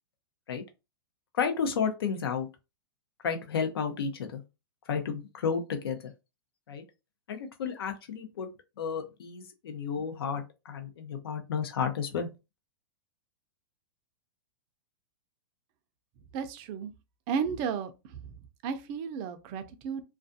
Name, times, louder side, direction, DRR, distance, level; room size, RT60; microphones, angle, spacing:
voice 1, 1.3-2.5 3.2-4.4 4.9-6.1 6.7-6.8 7.3-8.5 8.8-12.3, left 6 dB, 85° left, 0.7 m, -32 dB
voice 2, 16.3-16.9 17.3-18.2 18.6-20.0, right 6 dB, 30° right, 0.4 m, -33 dB
2.4 x 2.3 x 2.6 m
supercardioid pair, 160°, 12 cm